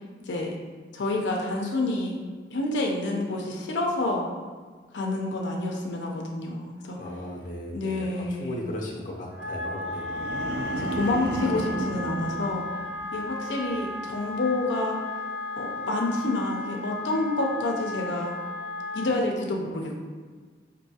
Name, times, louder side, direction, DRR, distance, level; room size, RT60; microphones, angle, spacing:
voice 1, 0.9-2.2 2.5-4.3 4.9-7.0 7.7-8.6 10.8-12.6 13.1-15.0 15.6-18.3 18.9-20.0, left 2 dB, 90° left, 0 dB, 0.5 m, -28 dB
voice 2, 6.9-10.3, left 1 dB, 45° left, -2 dB, 0.6 m, -37 dB
Wind instrument woodwind instrument, 9.3-19.2, left 3 dB, 10° right, 0.5 m, -34 dB
sound 1, 9.8-13.2 13.6-14.0, right 2 dB, 70° right, 0.6 m, -34 dB
4.5 x 2.6 x 2.7 m, 1.5 s
head